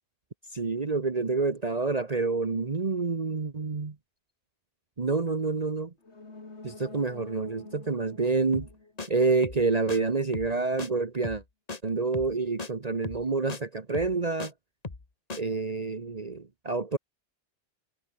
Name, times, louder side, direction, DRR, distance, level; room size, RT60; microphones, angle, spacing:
voice 1, 0.5-3.9 5.0-5.9 6.6-8.7 9.1-11.4 11.8-14.5 15.4-17.0, right 4 dB, 35° right, 1.3 m, -28 dB
sound 1, 6.0-9.7 10.0-10.1, left 3 dB, 65° left, 3.2 m, -48 dB
sound 2, 8.5-8.7 9.0-9.1 9.4-9.6 9.9-10.0 10.3-10.5 10.8-10.9 11.2-11.4 11.7-11.8 12.1-12.3 12.6-12.7 13.0-13.2 13.5-13.6 13.9-14.5 14.8-15.1 15.3-15.4, left 3 dB, 35° left, 1.7 m, -37 dB
omnidirectional pair, 1.2 m